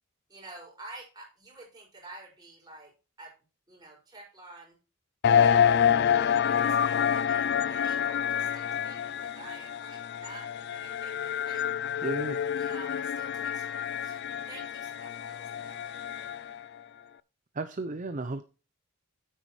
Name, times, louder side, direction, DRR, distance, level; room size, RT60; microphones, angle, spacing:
voice 1, 0.3-2.9 3.2-3.3 3.7-4.7 5.3-11.7 12.5-14.2 14.5-16.3, right 2 dB, 20° right, -3 dB, 5.6 m, -49 dB
sound 1, 5.2-16.6, left 8 dB, 50° left, 0.3 m, -27 dB
voice 2, 12.0-12.4 17.5-18.4, right 2 dB, 35° right, 10 dB, 0.6 m, -33 dB
9.6 x 9.1 x 3.2 m, 0.33 s
head